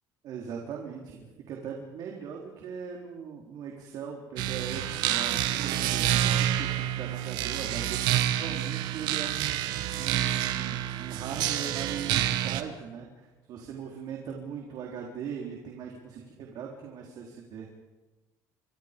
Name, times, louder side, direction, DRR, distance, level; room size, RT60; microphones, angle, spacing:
voice 1, 0.2-17.7, right 7 dB, 60° right, 0 dB, 3.9 m, -40 dB
sound 1, 4.4-12.6, right 12 dB, 80° right, 1.7 m, -28 dB
29.0 x 24.5 x 5.3 m, 1.2 s
cardioid pair, 125°, 7 cm